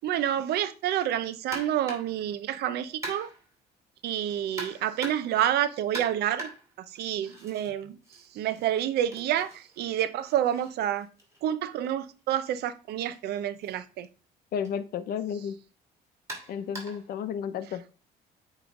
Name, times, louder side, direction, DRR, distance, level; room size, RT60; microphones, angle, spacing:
voice 1, 0.0-3.3 4.0-6.5 6.8-8.0 8.3-11.1 11.4-14.1, right 11 dB, 75° right, 0.6 m, -28 dB
sound 1, 1.5-2.2 3.0-3.5 4.6-5.4 5.9-7.7 8.0-11.9 13.0-13.2 13.6-13.7 14.6-14.8 16.3-17.1, right 2 dB, 15° right, 2.5 m, -42 dB
voice 2, 14.5-15.6 16.5-17.8, left 8 dB, 65° left, 0.7 m, -32 dB
8.5 x 3.2 x 3.7 m
cardioid pair, 110°, 17 cm